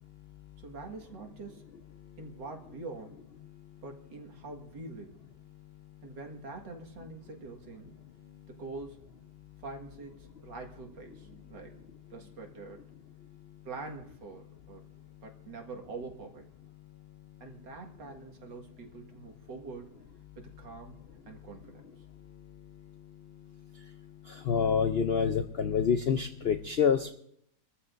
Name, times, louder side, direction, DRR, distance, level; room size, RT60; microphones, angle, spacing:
voice 1, 0.6-1.6 2.2-3.2 3.8-5.2 6.0-7.9 8.5-9.1 9.6-12.8 13.6-14.8 15.2-16.5 17.4-20.0 20.4-21.0 21.3-21.8, right 3 dB, 80° right, 2 dB, 2.3 m, -45 dB
voice 2, 24.5-27.1, left 7 dB, 75° left, 8 dB, 0.5 m, -27 dB
25.0 x 14.0 x 2.6 m, 0.69 s
omnidirectional pair, 1.9 m